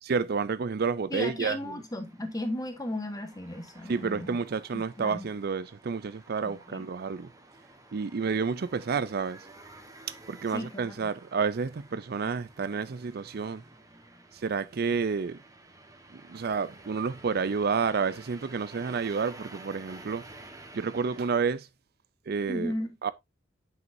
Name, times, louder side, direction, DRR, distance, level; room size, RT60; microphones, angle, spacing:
voice 1, 0.0-1.8 3.9-7.3 7.9-9.5 10.3-13.6 14.3-15.4 16.1-20.2 20.7-21.7 22.3-22.7 23.0-23.1, right 5 dB, 55° right, 0.5 m, -30 dB
voice 2, 1.1-4.4 4.7-5.3 6.4-6.9 10.5-11.0 22.5-23.0, left 1 dB, 20° left, 1.4 m, -35 dB
sound 1, 1.5-21.3, right 2 dB, 20° right, 1.3 m, -52 dB
8.0 x 6.2 x 2.7 m
head